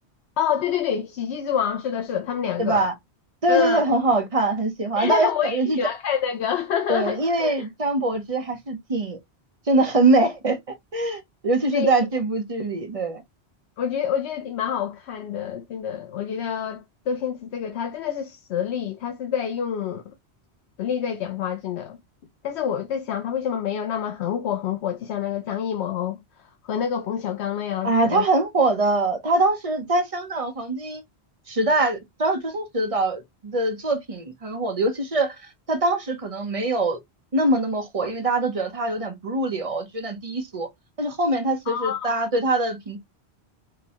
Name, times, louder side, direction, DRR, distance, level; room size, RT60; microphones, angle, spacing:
voice 1, 0.4-2.9 3.5-3.8 5.0-7.7 11.7-11.9 13.8-20.0 20.8-22.0 22.4-26.2 26.7-28.2 41.7-42.2, left 8 dB, 80° left, 0.9 m, -27 dB
voice 2, 2.6-2.9 3.4-5.8 6.9-9.2 9.7-13.2 27.8-31.0 31.5-37.0 37.3-40.7 41.0-43.0, right 2 dB, 35° right, 0.8 m, -23 dB
4.9 x 2.2 x 2.8 m
omnidirectional pair, 1.1 m